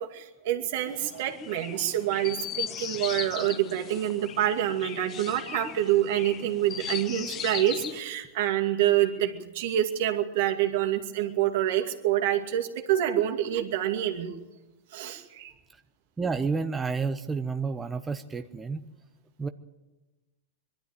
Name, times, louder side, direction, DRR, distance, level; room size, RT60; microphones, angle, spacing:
voice 1, 0.0-14.3 14.9-15.5, right 12 dB, 65° right, 5 dB, 2.4 m, -27 dB
Chirp tweet, 0.8-8.0, left 9 dB, 35° left, 1.1 m, -38 dB
voice 2, 16.2-18.9 19.4-19.5, right 4 dB, 15° right, 7 dB, 0.9 m, -30 dB
22.0 x 13.0 x 9.1 m, 1.1 s
hypercardioid pair, 105°, 0 cm